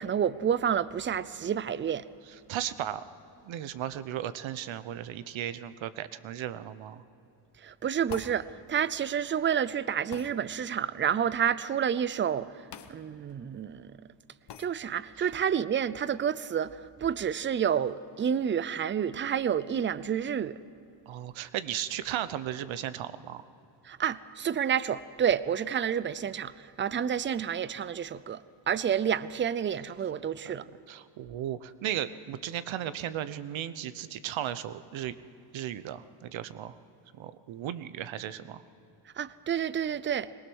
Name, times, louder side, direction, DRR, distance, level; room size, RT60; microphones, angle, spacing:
voice 1, 0.0-2.0 7.6-14.0 14.6-20.6 23.8-30.7 39.2-40.3, right 8 dB, 25° right, 0.5 m, -29 dB
voice 2, 2.5-3.0 3.4-7.0 15.2-15.3 21.1-23.4 30.4-30.5 30.9-35.2 35.5-36.7 37.2-38.6, right 11 dB, 70° right, 0.9 m, -35 dB
sound 1, 8.1-8.4 10.1-10.3 12.7-12.9 13.3-13.4 14.5-14.7, left 8 dB, 55° left, 1.2 m, -43 dB
22.0 x 19.5 x 6.3 m
cardioid pair, 105°, 49 cm